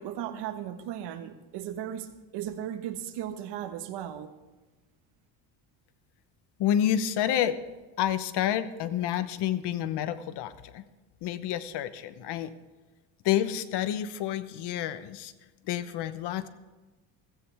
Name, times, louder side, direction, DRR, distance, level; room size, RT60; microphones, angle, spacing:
voice 1, 0.0-4.3, right 10 dB, 70° right, 8 dB, 1.5 m, -36 dB
voice 2, 6.6-7.6 8.0-10.8 11.2-12.5 13.2-15.3 15.7-16.5, left 11 dB, 65° left, 13 dB, 1.1 m, -29 dB
16.0 x 14.5 x 3.5 m, 1.2 s
cardioid pair, 110°, 43 cm